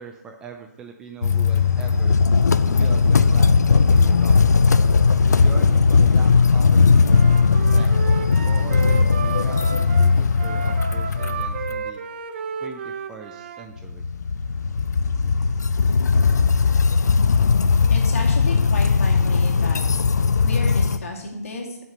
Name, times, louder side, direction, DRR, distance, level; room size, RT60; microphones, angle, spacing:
voice 1, 0.0-2.2 2.6-4.6 5.3-7.9 8.5-12.0 12.6-14.1, right 5 dB, 10° right, 3 dB, 0.3 m, -41 dB
sound 1, 1.2-11.8 13.8-21.0, left 5 dB, 75° left, 0.5 m, -18 dB
Wind instrument woodwind instrument, 7.0-13.7, right 6 dB, 40° right, 0.7 m, -32 dB
voice 2, 17.9-19.8 20.4-21.8, left 2 dB, 55° left, -1 dB, 2.5 m, -32 dB
9.1 x 6.0 x 5.5 m, 0.83 s
hypercardioid pair, 155°, 9 cm